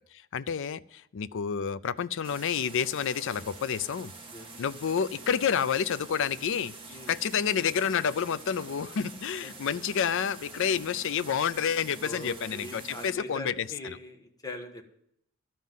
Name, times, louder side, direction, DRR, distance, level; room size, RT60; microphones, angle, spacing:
voice 1, 0.1-4.1 4.6-14.0, left 7 dB, 65° left, 16 dB, 0.4 m, -29 dB
sound 1, 2.2-13.1, right 3 dB, 25° right, 1.7 m, -46 dB
voice 2, 12.0-14.9, left 1 dB, 20° left, 4 dB, 1.3 m, -41 dB
13.0 x 5.6 x 9.3 m, 0.73 s
head